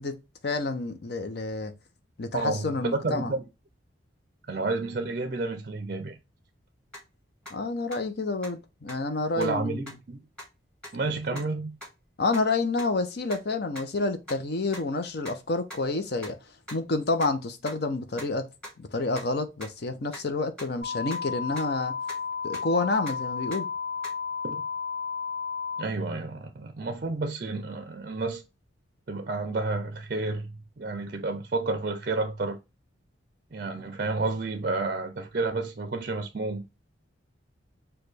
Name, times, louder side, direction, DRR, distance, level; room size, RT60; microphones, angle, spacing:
voice 1, 0.0-1.7 2.2-3.3 7.5-9.9 11.3-11.4 12.2-16.4 16.7-18.5 18.8-21.9 22.4-23.7, left 3 dB, 55° left, 0.6 m, -29 dB
voice 2, 2.3-3.4 4.5-6.2 9.4-10.2 10.9-11.7 24.4-24.6 25.8-28.4 29.1-32.6 33.5-36.6, right 3 dB, 45° right, 0.5 m, -30 dB
sound 1, 6.9-7.0 7.5-7.6 7.9-8.0 8.4-8.5 8.9-9.0 9.4-9.5 9.9-10.0 10.4-10.5 10.8-10.9 11.3-11.4 11.8-11.9 12.3-12.4 12.8-12.9 13.3-13.4 13.7-13.8 14.3-14.4 14.7-14.8 15.2-15.3 15.7-15.8 16.2-16.3 16.7-16.8 17.2-17.3 17.7-17.8 18.2-18.3 18.6-18.7 19.2-19.3 19.6-19.7 20.1-20.2 20.6-20.7 21.1-21.2 21.6-21.7 22.1-22.2 22.5-22.7 23.0-23.2 23.5-23.6 24.0-24.1, left 1 dB, 5° left, 1.7 m, -40 dB
sound 2, 20.8-25.8, left 6 dB, 40° left, 3.0 m, -33 dB
6.3 x 2.3 x 3.3 m
head